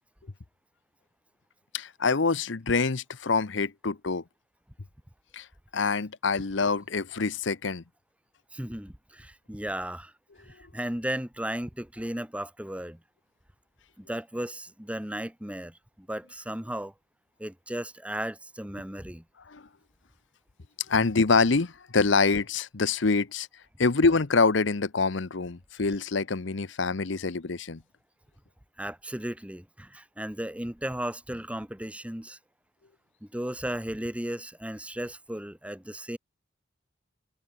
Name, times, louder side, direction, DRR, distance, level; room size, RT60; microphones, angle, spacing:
voice 1, 1.7-4.2 5.3-5.5 5.7-7.8 19.5-19.6 20.9-23.5 23.8-27.8, left 4 dB, 65° left, 0.9 m, -25 dB
voice 2, 8.5-10.1 10.4-13.0 14.0-16.9 17.4-19.2 28.8-32.4 33.2-36.2, right 1 dB, 5° right, 1.5 m, -35 dB
head